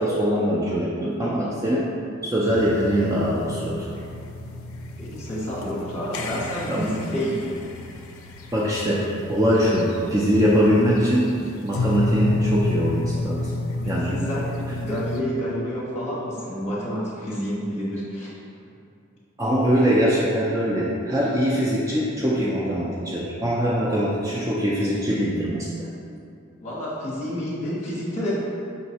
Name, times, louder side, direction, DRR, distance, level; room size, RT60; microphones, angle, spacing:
voice 1, 0.0-1.9 2.2-3.9 6.7-6.9 8.5-11.3 11.6-13.5 13.9-14.1 19.4-25.9, equal, 15° right, -5 dB, 0.3 m, -22 dB
sound 1, 2.4-15.2, left 1 dB, 85° left, 0.4 m, -31 dB
voice 2, 5.0-7.6 13.8-18.3 26.6-28.4, equal, 35° left, -7 dB, 1.1 m, -29 dB
5.3 x 3.1 x 2.8 m, 2.6 s
head